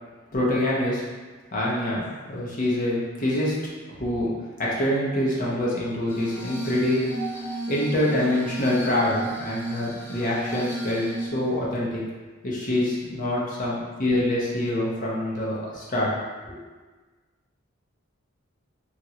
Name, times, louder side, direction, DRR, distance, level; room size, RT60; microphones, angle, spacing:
voice 1, 0.3-1.0 1.5-3.6 3.9-4.3 4.6-7.0 7.7-12.0 12.4-16.1 16.4-16.6, left 1 dB, 40° left, -5 dB, 0.7 m, -25 dB
Glass, 6.1-11.3, right 1 dB, 10° left, 0.3 m, -33 dB
2.9 x 2.4 x 2.8 m, 1.3 s
head